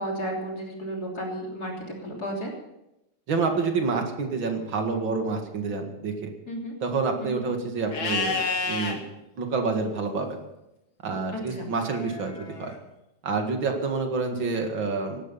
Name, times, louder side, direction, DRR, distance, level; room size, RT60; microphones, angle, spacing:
voice 1, 0.0-2.5 6.5-6.8 7.2-7.5 11.3-11.7, equal, 45° left, -1 dB, 3.8 m, -33 dB
voice 2, 3.3-6.3 6.8-9.0 9.4-10.4 11.0-12.7 13.2-15.2, right 4 dB, 65° right, 4 dB, 2.7 m, -28 dB
Livestock farm animals working animals, 7.9-8.9 11.8-12.8, left 4 dB, 70° left, 2.9 m, -30 dB
17.5 x 12.0 x 5.7 m, 0.90 s
omnidirectional pair, 2.4 m